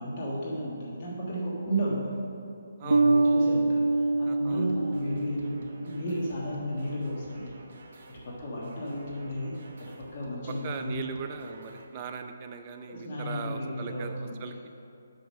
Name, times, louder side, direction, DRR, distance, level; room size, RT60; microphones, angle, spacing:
voice 1, 0.0-2.2 2.8-7.5 8.1-11.0 11.4-11.5 12.9-14.6, equal, 40° left, -6 dB, 1.3 m, -33 dB
voice 2, 2.8-3.2 4.3-4.7 10.6-14.7, right 6 dB, 30° right, 5 dB, 0.5 m, -39 dB
sound 1, 2.9-6.3, right 2 dB, 85° right, 0.4 m, -25 dB
sound 2, 4.5-11.8, right 3 dB, 50° right, 1.0 m, -51 dB
6.0 x 5.2 x 6.2 m, 2.6 s
hypercardioid pair, 155°, 0 cm